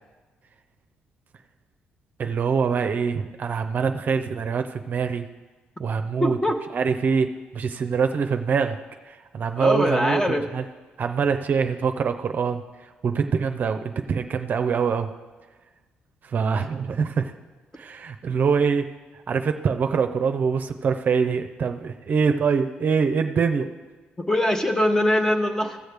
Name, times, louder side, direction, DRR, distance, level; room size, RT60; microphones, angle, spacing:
voice 1, 2.2-5.3 5.8-6.4 6.7-8.8 9.0-10.6 11.0-15.1 16.2-17.3 17.8-23.7, right 5 dB, 50° right, 6 dB, 0.6 m, -24 dB
voice 2, 6.2-6.6 9.6-10.5 24.2-25.8, left 1 dB, 15° left, 6 dB, 1.1 m, -22 dB
16.0 x 6.4 x 3.4 m, 1.3 s
supercardioid pair, 75°, 4 cm